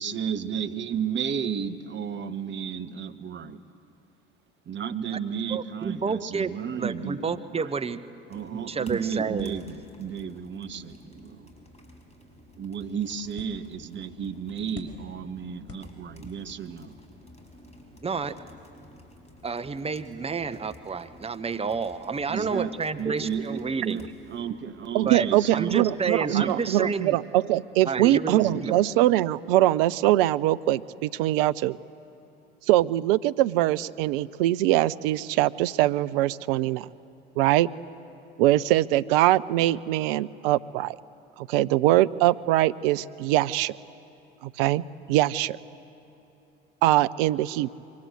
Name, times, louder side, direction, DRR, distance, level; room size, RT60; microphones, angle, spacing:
voice 1, 0.0-3.6 4.7-7.7 8.3-11.5 12.6-17.0 22.3-25.9 26.3-26.6 28.3-28.8, right 7 dB, 40° right, 8 dB, 1.3 m, -33 dB
voice 2, 5.5-8.0 8.5-9.6 18.0-18.4 19.4-24.1 25.0-27.2 27.8-28.8, right 5 dB, 20° right, 9 dB, 1.1 m, -30 dB
sound 1, 8.3-26.7, left 1 dB, 20° left, 5.2 m, -52 dB
sound 2, 9.4-16.5, left 5 dB, 50° left, 5.0 m, -52 dB
voice 3, 24.9-31.8 32.7-36.9 37.4-37.7 38.4-40.9 41.4-43.7 44.6-44.8 45.1-45.6 46.8-47.8, right 15 dB, 65° right, 15 dB, 0.6 m, -22 dB
25.5 x 23.5 x 7.9 m, 3.0 s
figure-of-eight pair, 60°, 30 cm